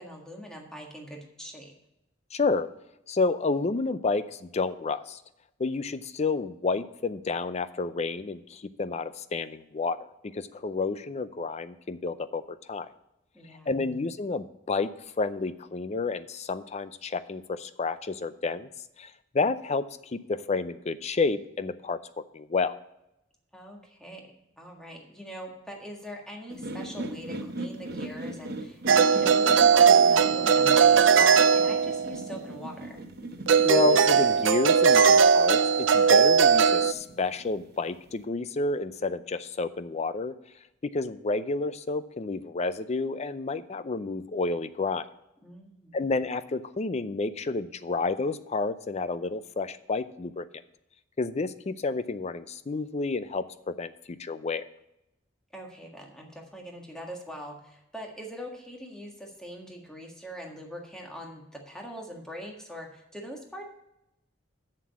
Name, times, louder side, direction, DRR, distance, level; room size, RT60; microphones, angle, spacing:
voice 1, 0.0-1.7 13.3-13.8 23.5-24.3 24.6-33.0 45.4-46.0 55.5-63.6, equal, 5° left, 0 dB, 1.7 m, -42 dB
voice 2, 2.3-2.7 3.1-5.2 5.6-10.0 10.2-12.9 13.7-14.9 15.2-18.7 19.0-19.8 20.1-22.8 33.6-40.3 40.8-45.1 45.9-50.5 51.2-54.7, left 3 dB, 35° left, 13 dB, 0.5 m, -30 dB
sound 1, 26.5-38.2, right 1 dB, 60° right, 0.8 m, -40 dB
sound 2, 28.9-32.2 33.5-36.9, right 6 dB, 75° right, 0.5 m, -19 dB
7.3 x 6.8 x 7.0 m, 0.85 s
head